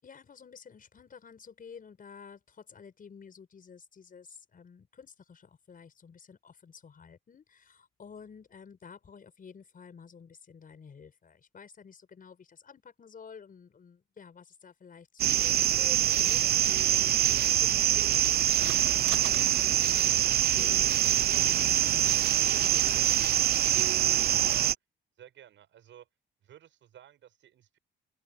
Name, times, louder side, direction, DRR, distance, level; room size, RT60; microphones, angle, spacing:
voice 1, 0.0-23.5, left 6 dB, 45° left, 6.1 m, -51 dB
Crickets on Summer Night (binaural), 15.2-24.7, right 12 dB, 50° right, 0.4 m, -25 dB
CD out, 17.0-23.8, right 14 dB, 90° right, 1.1 m, -49 dB
voice 2, 25.2-26.1 26.4-27.8, right 10 dB, 70° right, 7.6 m, -55 dB
open air
cardioid pair, 90°, 20 cm